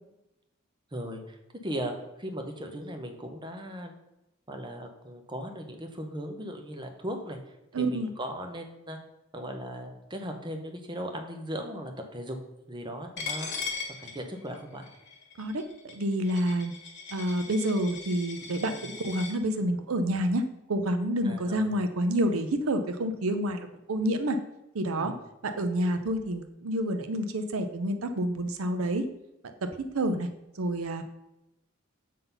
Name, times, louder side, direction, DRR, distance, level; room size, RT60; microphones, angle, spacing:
voice 1, 0.9-1.4 1.6-1.9 2.2-4.0 4.5-7.4 7.8-9.0 9.3-12.4 12.7-13.7 14.0-14.9 18.7-18.8 21.2-21.7 24.9-25.2, equal, 20° right, 4 dB, 0.9 m, -37 dB
voice 2, 7.7-8.1 15.4-16.7 17.1-20.4 20.7-24.4 24.7-25.1 25.4-29.0 29.9-30.3 30.6-31.0, right 1 dB, 80° right, 8 dB, 0.6 m, -28 dB
Coin (dropping), 13.2-19.3, left 5 dB, 55° left, 1.4 m, -39 dB
7.4 x 4.0 x 5.5 m, 0.91 s
head